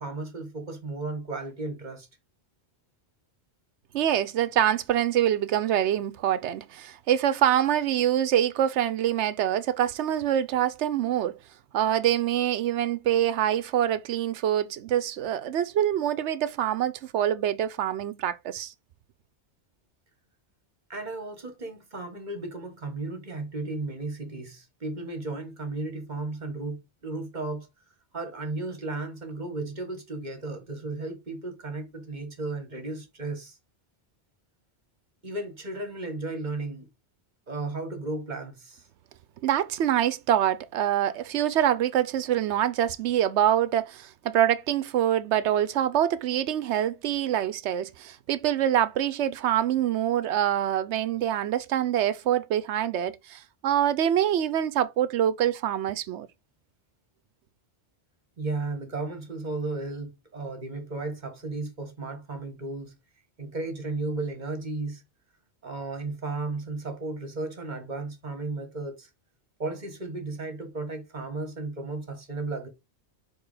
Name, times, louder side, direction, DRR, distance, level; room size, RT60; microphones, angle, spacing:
voice 1, 0.0-2.1 20.9-27.7 28.1-33.6 35.2-36.9 37.5-38.8 58.4-62.9 63.4-65.0 65.6-69.1 69.6-72.7, right 3 dB, 40° right, 1.6 m, -34 dB
voice 2, 3.9-11.3 11.7-18.7 39.4-56.3, right 11 dB, 85° right, 0.9 m, -25 dB
4.8 x 4.6 x 4.9 m
omnidirectional pair, 1.1 m